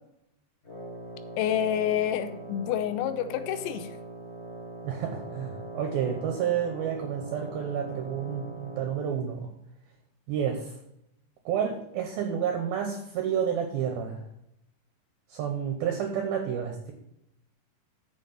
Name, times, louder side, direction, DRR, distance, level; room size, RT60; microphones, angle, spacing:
Wind instrument woodwind instrument, 0.6-9.2, right 1 dB, 30° left, 1.3 m, -41 dB
voice 1, 1.4-3.9, left 10 dB, 85° left, 10 dB, 3.0 m, -28 dB
voice 2, 4.8-9.5 10.3-10.8 11.5-14.2 15.3-16.9, right 8 dB, 70° right, 3 dB, 2.5 m, -30 dB
7.5 x 7.2 x 5.5 m, 0.80 s
omnidirectional pair, 5.2 m